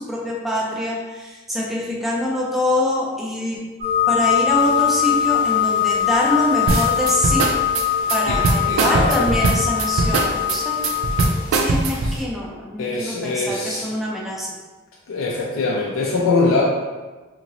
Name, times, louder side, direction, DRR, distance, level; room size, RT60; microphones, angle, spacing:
voice 1, 0.0-3.6 4.1-7.5 8.1-10.8 11.5-14.5, left 1 dB, ahead, -4 dB, 0.4 m, -24 dB
sound 1, 3.8-11.3, left 9 dB, 45° right, 1.0 m, -21 dB
sound 2, 4.6-12.2, left 1 dB, 40° left, 0.7 m, -41 dB
sound 3, 6.7-12.2, right 3 dB, 75° right, 0.3 m, -20 dB
voice 2, 8.3-9.4 12.0-12.1 12.8-13.9 15.1-16.6, left 3 dB, 80° left, -3 dB, 0.4 m, -23 dB
2.9 x 2.8 x 2.5 m, 1.3 s
head